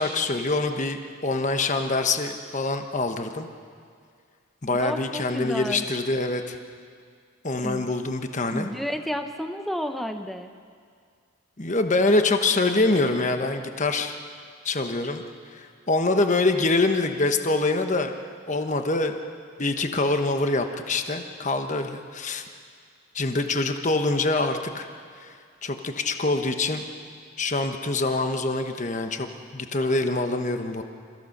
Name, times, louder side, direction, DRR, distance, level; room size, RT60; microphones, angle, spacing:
voice 1, 0.0-3.5 4.6-6.6 7.4-8.7 11.6-14.2 14.6-15.2 15.5-18.1 18.5-19.2 19.6-22.4 23.1-24.9 25.2-25.3 25.6-26.8 27.4-29.3 29.5-30.8, left 2 dB, 35° left, 6 dB, 1.2 m, -25 dB
voice 2, 4.7-5.9 7.6-7.9 8.5-10.5, equal, ahead, 6 dB, 0.8 m, -31 dB
27.5 x 15.5 x 6.6 m, 2.1 s
head